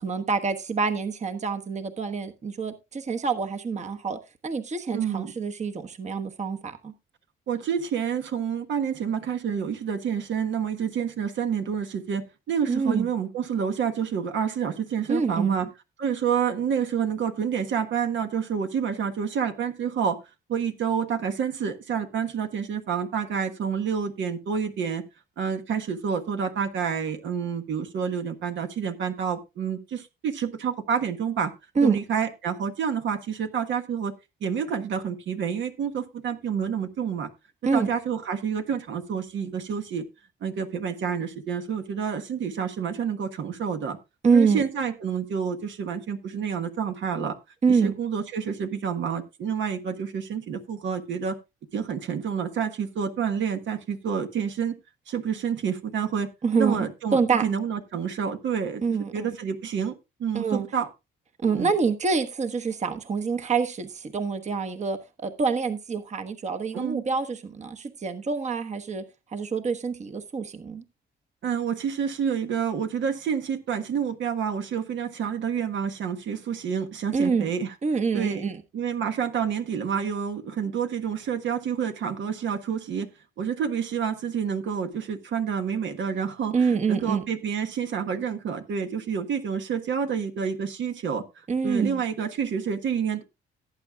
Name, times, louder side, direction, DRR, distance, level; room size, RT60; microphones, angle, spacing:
voice 1, 0.0-6.9 12.7-13.1 15.1-15.7 31.8-32.0 37.6-37.9 44.2-44.6 47.6-47.9 56.4-57.5 58.8-59.3 60.3-60.7 61.4-69.0 69.3-70.8 77.1-77.5 77.8-78.6 86.5-87.2 91.5-92.0, right 5 dB, 35° right, 1.2 m, -26 dB
voice 2, 4.9-5.3 7.5-15.7 16.0-20.2 20.5-25.0 25.4-31.5 31.8-34.1 34.4-37.3 37.7-40.0 40.4-44.0 44.3-47.4 47.7-51.4 51.7-54.8 55.1-56.3 56.6-58.8 59.1-59.9 60.2-60.9 61.4-61.7 66.7-67.0 71.4-77.7 78.1-78.4 78.7-83.1 83.4-91.2 91.6-93.2, right 7 dB, 70° right, 1.4 m, -28 dB
17.5 x 8.6 x 2.4 m
cardioid pair, 90°, 20 cm